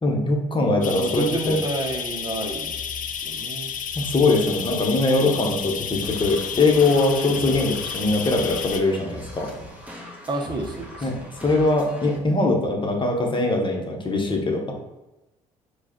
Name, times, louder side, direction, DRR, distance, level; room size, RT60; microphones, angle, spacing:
voice 1, 0.0-1.6 3.9-9.5 11.0-11.1 11.4-14.7, left 2 dB, 25° left, 1 dB, 1.2 m, -22 dB
sound 1, 0.8-8.8, left 7 dB, 45° left, 0.5 m, -31 dB
voice 2, 1.0-2.7 3.1-3.7 7.4-7.6 10.3-11.1, right 2 dB, 25° right, 2 dB, 1.0 m, -29 dB
sound 2, 6.0-12.2, left 1 dB, 5° right, 1.4 m, -40 dB
4.7 x 2.5 x 4.4 m, 0.98 s
hypercardioid pair, 55°, 18 cm